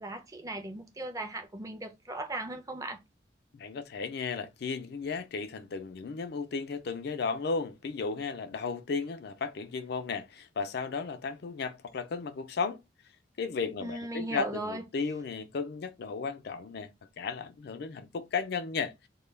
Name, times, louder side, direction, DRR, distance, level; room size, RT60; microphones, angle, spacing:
voice 1, 0.0-3.0 13.8-14.8, right 2 dB, 20° right, 0.5 m, -37 dB
voice 2, 3.5-12.8 13.4-16.9 17.2-18.9, left 5 dB, 60° left, 0.4 m, -34 dB
2.2 x 2.1 x 3.2 m
head